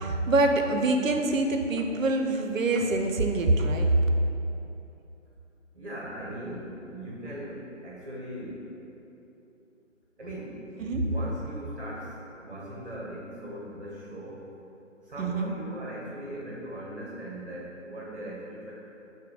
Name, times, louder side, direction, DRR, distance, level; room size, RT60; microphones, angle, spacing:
voice 1, 0.0-3.9 10.8-11.1 15.2-15.5, right 2 dB, 90° right, 4 dB, 0.5 m, -25 dB
voice 2, 5.7-8.7 10.2-10.6 11.0-14.5 15.0-18.7, right 1 dB, 45° right, -4 dB, 0.6 m, -39 dB
4.8 x 2.1 x 3.7 m, 2.9 s
figure-of-eight pair, 155°, 38 cm